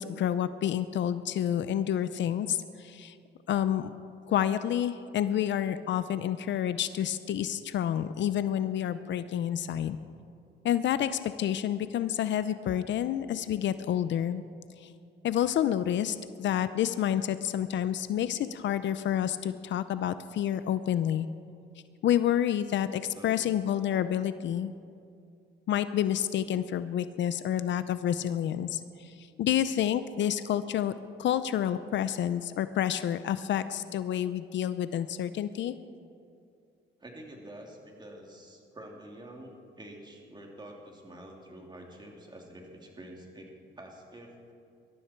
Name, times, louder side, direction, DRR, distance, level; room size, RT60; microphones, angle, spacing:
voice 1, 0.0-3.1 3.5-3.9 4.3-10.0 10.6-14.4 15.2-21.3 22.0-24.7 25.7-29.1 29.4-30.9 31.2-35.7, left 10 dB, 70° left, 13 dB, 0.6 m, -29 dB
voice 2, 23.1-23.5 23.9-24.1 37.0-43.5 43.8-44.5, right 1 dB, 20° right, 0 dB, 3.2 m, -47 dB
21.5 x 13.5 x 4.6 m, 2.4 s
cardioid pair, 90°, 20 cm